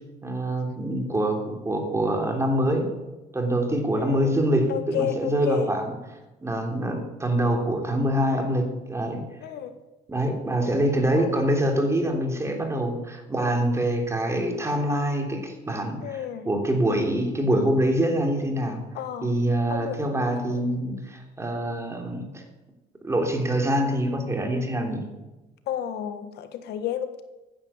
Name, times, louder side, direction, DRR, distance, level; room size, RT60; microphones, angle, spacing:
voice 1, 0.2-2.9 3.3-5.9 6.4-9.2 10.1-18.8 19.2-22.4 23.0-25.0, right 1 dB, 15° right, 3 dB, 3.4 m, -25 dB
voice 2, 4.0-4.4 4.7-5.7 9.4-9.7 11.1-11.3 16.0-16.4 18.9-19.3 19.7-20.0 20.5-20.6 25.7-27.2, left 10 dB, 75° left, 10 dB, 1.5 m, -31 dB
14.5 x 10.0 x 7.3 m, 1.1 s
cardioid pair, 110°, 17 cm